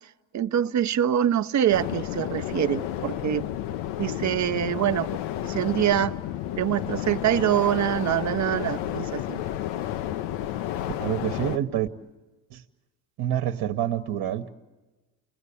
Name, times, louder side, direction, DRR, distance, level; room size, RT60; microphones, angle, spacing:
voice 1, 0.3-3.5 4.0-5.1 5.4-6.1 6.6-9.4, right 11 dB, 40° right, 0.8 m, -24 dB
sound 1, 1.7-11.6, left 12 dB, 75° left, 0.8 m, -31 dB
voice 2, 11.0-11.9 12.5-12.6 13.2-14.5, right 11 dB, 60° right, 1.3 m, -27 dB
29.5 x 20.5 x 8.5 m
supercardioid pair, 85°, 43 cm